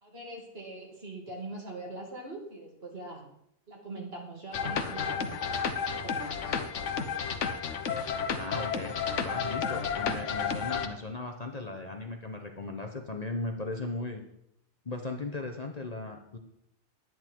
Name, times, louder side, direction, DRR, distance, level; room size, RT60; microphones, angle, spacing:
voice 1, 0.0-3.3 3.7-5.4 5.8-6.6, right 2 dB, 55° right, -1 dB, 2.8 m, -42 dB
sound 1, 4.5-10.9, left 6 dB, 80° left, 1.2 m, -32 dB
voice 2, 8.4-14.2 14.8-16.4, left 2 dB, 35° left, 3 dB, 1.0 m, -37 dB
10.5 x 9.5 x 4.6 m, 0.77 s
omnidirectional pair, 1.3 m